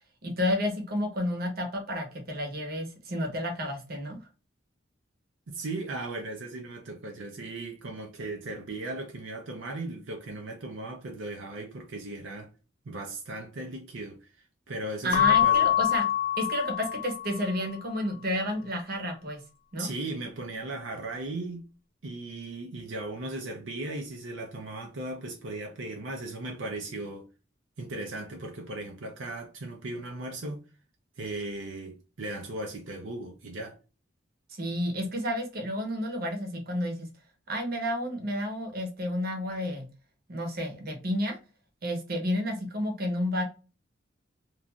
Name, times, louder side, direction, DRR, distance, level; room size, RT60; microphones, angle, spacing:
voice 1, 0.2-4.2 15.0-16.1 16.4-19.4 19.7-19.9 34.5-37.1 37.5-39.8 40.3-41.4 41.8-43.4, equal, 55° right, 0.9 m, -31 dB
voice 2, 5.5-12.5 12.9-14.3 14.7-15.7 19.8-21.7 22.0-27.3 27.8-30.6 31.2-33.8, right 2 dB, 80° right, 0.5 m, -37 dB
Keyboard (musical) / Bell, 15.1-17.5, left 12 dB, 50° left, 0.3 m, -25 dB
3.1 x 2.5 x 2.3 m
head